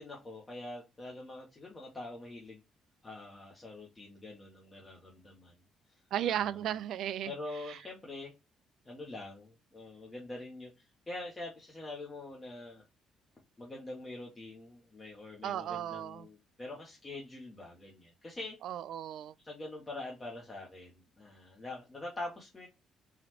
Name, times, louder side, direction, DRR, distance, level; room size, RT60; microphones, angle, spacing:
voice 1, 0.0-2.6 3.0-5.6 5.9-6.7 7.2-8.3 8.8-12.8 13.6-18.6 19.4-22.7, left 2 dB, 20° left, 0.9 m, -45 dB
voice 2, 6.1-7.3 7.7-7.8 15.4-16.3 18.6-19.3, right 11 dB, 65° right, 0.3 m, -35 dB
3.8 x 3.1 x 2.9 m
cardioid pair, 175°, 0 cm